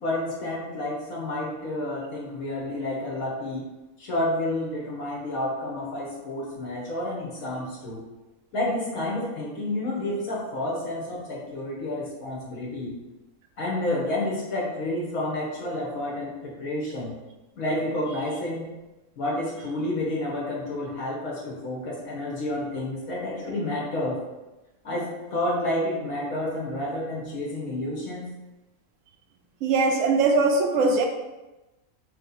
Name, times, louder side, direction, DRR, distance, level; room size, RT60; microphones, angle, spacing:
voice 1, 0.0-3.6 4.0-8.0 8.5-13.0 13.6-17.1 17.6-18.7 19.2-24.2 24.8-28.3, left 1 dB, 80° left, -4 dB, 1.6 m, -30 dB
voice 2, 29.6-31.1, right 3 dB, 70° right, 3 dB, 0.9 m, -21 dB
3.5 x 2.9 x 3.9 m, 1.1 s
omnidirectional pair, 1.4 m